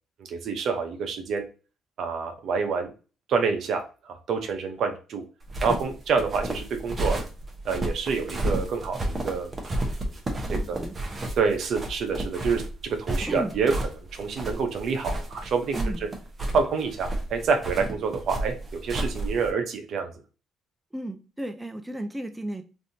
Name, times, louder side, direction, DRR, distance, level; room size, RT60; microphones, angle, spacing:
voice 1, 0.2-1.4 2.0-2.9 3.3-5.2 5.6-7.2 7.6-9.5 10.5-10.8 11.4-15.8 16.5-20.1, right 5 dB, 65° right, 5 dB, 0.7 m, -27 dB
sound 1, 5.4-19.5, right 1 dB, 30° right, 0.9 m, -31 dB
voice 2, 10.5-11.2 13.2-13.5 15.7-16.0 20.9-22.6, right 1 dB, 10° right, 6 dB, 0.4 m, -34 dB
3.3 x 2.6 x 2.7 m, 0.34 s
cardioid pair, 90°, 0 cm